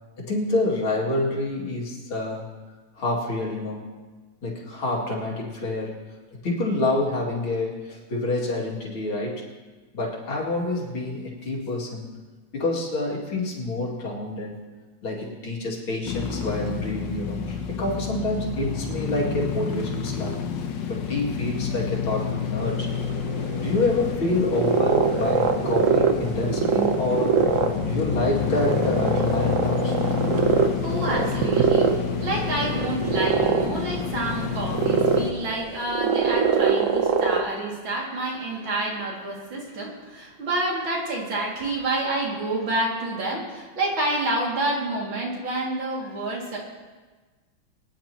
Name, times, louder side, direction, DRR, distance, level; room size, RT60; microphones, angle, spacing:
voice 1, 0.2-2.5 3.0-3.8 4.4-6.0 6.3-9.4 9.9-12.1 12.5-14.6 15.0-20.4 20.9-22.9 23.6-27.4 27.8-30.0, left 2 dB, 90° left, -4 dB, 3.3 m, -27 dB
sound 1, 16.0-35.3, left 7 dB, 65° left, 1.6 m, -29 dB
sound 2, 22.6-37.4, right 6 dB, 55° right, 1.0 m, -24 dB
voice 2, 30.5-46.6, right 2 dB, 70° right, -3 dB, 3.3 m, -28 dB
23.5 x 10.0 x 3.0 m, 1.3 s
omnidirectional pair, 2.2 m